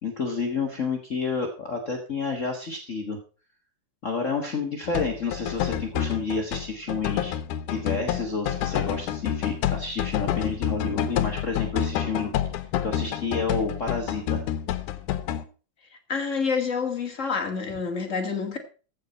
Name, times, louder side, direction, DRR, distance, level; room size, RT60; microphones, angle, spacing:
voice 1, 0.0-3.2 4.0-7.3 7.7-12.3 12.8-14.4, left 4 dB, 55° left, 0.8 m, -30 dB
sound 1, 4.8-15.4, left 11 dB, 75° left, 2.2 m, -28 dB
voice 2, 16.1-18.6, left 5 dB, 30° left, 1.5 m, -28 dB
15.0 x 6.5 x 5.4 m
omnidirectional pair, 3.7 m